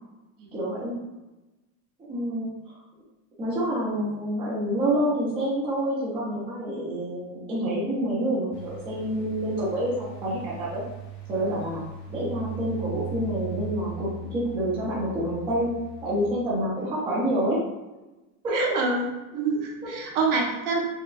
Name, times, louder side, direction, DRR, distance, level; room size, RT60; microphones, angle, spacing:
voice 1, 0.5-1.0 2.1-2.5 3.4-10.8 11.3-11.8 12.1-15.7 16.0-17.6 18.4-18.8 19.8-20.0, right 1 dB, 15° right, -6 dB, 0.4 m, -27 dB
sound 1, 8.5-16.3, right 4 dB, 50° left, 0.7 m, -39 dB
voice 2, 18.5-20.8, right 3 dB, 55° right, 0 dB, 0.8 m, -26 dB
4.4 x 2.1 x 2.4 m, 1.1 s
cardioid pair, 165°, 41 cm